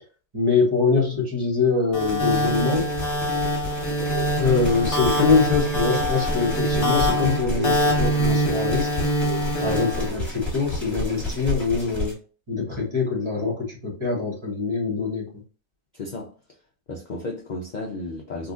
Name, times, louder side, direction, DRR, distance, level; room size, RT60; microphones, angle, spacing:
voice 1, 0.3-2.9 4.4-8.9 9.6-12.1 12.5-15.3, left 4 dB, 25° right, 0.9 m, -23 dB
sound 1, 1.9-10.1, equal, 40° left, 1.2 m, -24 dB
sound 2, 2.0-12.1, left 1 dB, ahead, 1.3 m, -31 dB
sound 3, 4.0-10.9, right 4 dB, 75° right, 1.1 m, -39 dB
voice 2, 15.9-16.3 16.9-18.5, left 2 dB, 70° left, 0.4 m, -33 dB
3.8 x 2.4 x 2.4 m
omnidirectional pair, 1.5 m